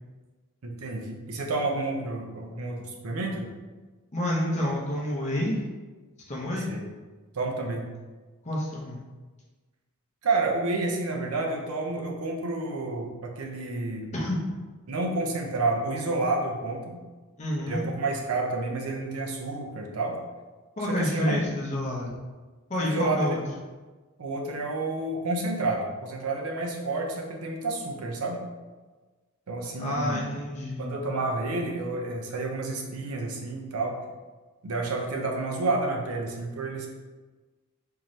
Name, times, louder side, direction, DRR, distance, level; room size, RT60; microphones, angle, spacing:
voice 1, 0.6-3.5 6.7-6.9 7.3-7.9 10.2-14.1 14.9-16.8 17.7-20.2 20.9-21.4 22.8-23.4 24.2-28.4 29.5-30.2 30.8-34.0 34.6-36.9, right 2 dB, 85° right, 1 dB, 0.6 m, -30 dB
voice 2, 4.1-5.6 6.3-6.7 8.4-9.0 14.1-14.4 17.4-17.8 20.8-22.1 22.7-23.4 29.8-30.8, left 1 dB, 30° left, -5 dB, 0.7 m, -28 dB
3.7 x 2.8 x 3.1 m, 1.3 s
head